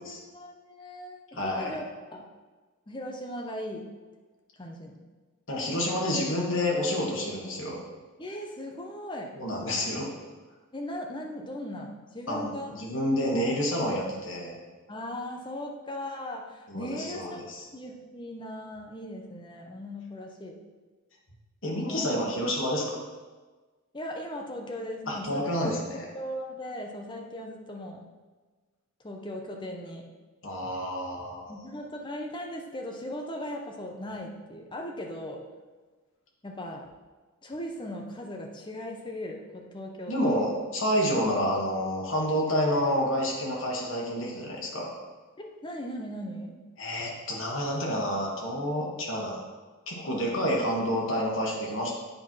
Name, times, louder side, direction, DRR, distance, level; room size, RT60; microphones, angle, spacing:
voice 1, 0.0-1.8 2.1-2.3 2.9-3.9 4.6-5.0 8.2-9.3 10.7-12.7 14.9-20.6 21.9-22.1 22.4-22.5 23.9-25.7 26.1-28.0 29.0-30.0 31.5-35.4 36.4-36.8 37.4-40.4 45.4-46.5, left 1 dB, 20° left, 1 dB, 0.8 m, -38 dB
voice 2, 1.3-1.7 5.5-7.8 9.4-10.1 12.3-14.6 16.7-17.6 21.6-23.0 25.1-26.0 30.4-31.5 40.1-44.9 46.8-49.4 49.9-51.9, equal, 60° left, -2 dB, 1.7 m, -29 dB
8.8 x 4.4 x 4.7 m, 1.3 s
head